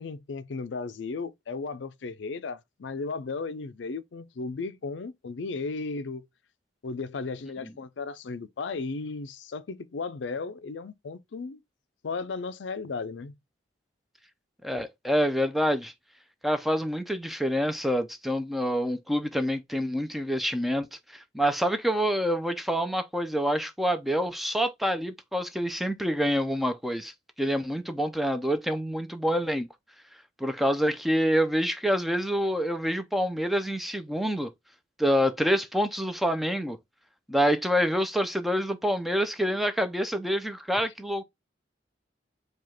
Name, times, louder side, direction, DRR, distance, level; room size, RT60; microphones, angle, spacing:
voice 1, 0.0-6.3 6.8-11.6 12.0-13.3, left 4 dB, 85° left, 0.5 m, -35 dB
voice 2, 14.6-15.9 16.4-27.1 27.4-29.7 30.4-34.5 35.0-36.8 37.3-41.2, equal, ahead, 0.5 m, -27 dB
4.8 x 2.4 x 4.3 m
head